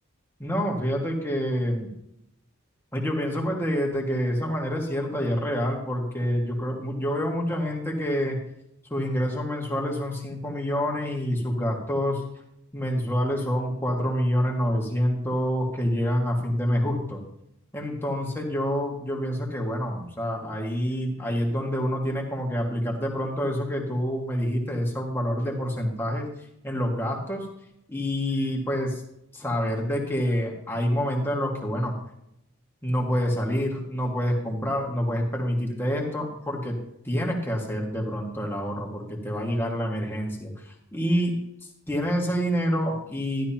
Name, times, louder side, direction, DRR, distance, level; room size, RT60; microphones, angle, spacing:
voice 1, 0.4-1.9 2.9-8.4 8.9-12.2 12.7-17.2 17.7-26.3 26.6-27.5 27.9-29.0 29.3-31.9 32.8-36.8 37.0-41.3 41.9-43.5, equal, 10° left, -1 dB, 1.8 m, -27 dB
12.5 x 12.0 x 2.9 m, 0.78 s
head